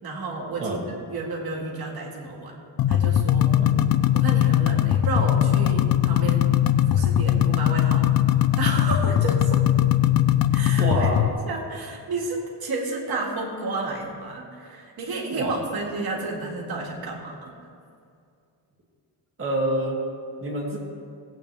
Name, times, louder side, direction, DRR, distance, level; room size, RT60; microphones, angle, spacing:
voice 1, 0.0-2.5 2.9-3.6 4.1-6.6 6.9-8.1 8.6-9.6 10.5-11.1 11.5-17.5, right 3 dB, 60° right, -2 dB, 2.2 m, -31 dB
sound 1, 2.8-11.3, left 11 dB, 55° left, 0.5 m, -20 dB
voice 2, 10.8-11.2 15.3-15.6 19.4-20.0 20.4-20.8, right 2 dB, 30° right, -4 dB, 2.4 m, -27 dB
19.5 x 8.5 x 3.5 m, 2.4 s
wide cardioid pair, 175°, 42 cm